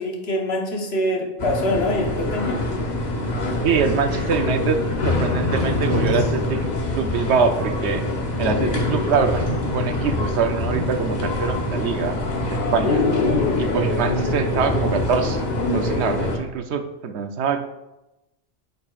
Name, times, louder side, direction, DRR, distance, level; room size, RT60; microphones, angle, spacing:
voice 1, 0.0-2.6, left 1 dB, 65° left, 1 dB, 1.4 m, -24 dB
sound 1, 1.4-16.4, left 2 dB, 40° left, 1.0 m, -24 dB
voice 2, 3.6-8.0 8.4-12.2 12.5-13.0 13.6-17.7, right 5 dB, 75° right, 8 dB, 0.9 m, -24 dB
8.5 x 6.8 x 2.4 m, 0.95 s
omnidirectional pair, 1.2 m